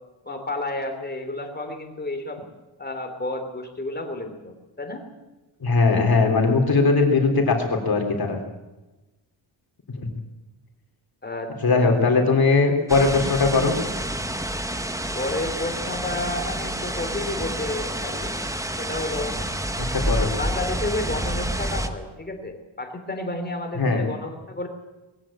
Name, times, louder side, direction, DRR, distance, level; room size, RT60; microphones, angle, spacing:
voice 1, 0.2-2.4 2.8-5.0 11.2-11.9 15.1-18.3 18.8-19.4 20.0-24.7, left 2 dB, 20° left, 5 dB, 3.3 m, -31 dB
voice 2, 5.6-8.4 11.6-13.7 19.8-20.3 23.8-24.0, left 4 dB, 45° left, 2 dB, 3.5 m, -20 dB
sound 1, 12.9-21.9, right 1 dB, 5° right, 1.0 m, -28 dB
21.0 x 16.0 x 8.9 m, 1.1 s
wide cardioid pair, 165°, 48 cm